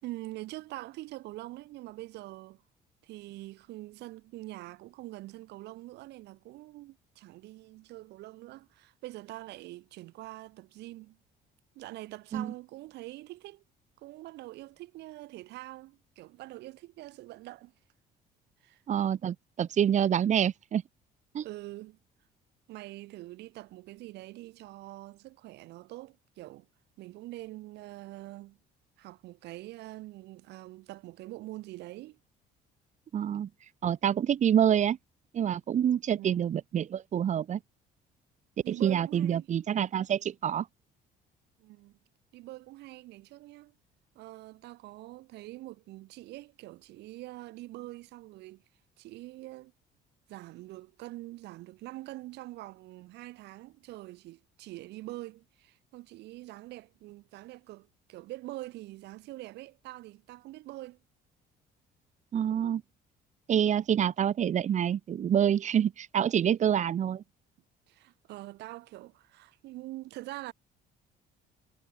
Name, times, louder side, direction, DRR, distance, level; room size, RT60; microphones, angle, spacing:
voice 1, 0.0-2.6 3.0-11.2 11.7-13.6 14.0-17.7 18.6-18.8 21.4-22.0 22.7-26.7 27.0-28.6 29.0-32.2 36.1-36.5 38.6-39.5 41.6-42.0 42.3-43.7 44.1-48.6 49.0-49.7 50.3-61.0 67.9-70.5, right 18 dB, 85° right, 4.3 m, -44 dB
voice 2, 18.9-20.8 21.3-21.4 33.1-33.5 33.8-35.0 35.3-37.6 38.7-40.7 62.3-62.8 63.5-67.2, right 9 dB, 45° right, 1.2 m, -27 dB
cardioid pair, 110°, 17 cm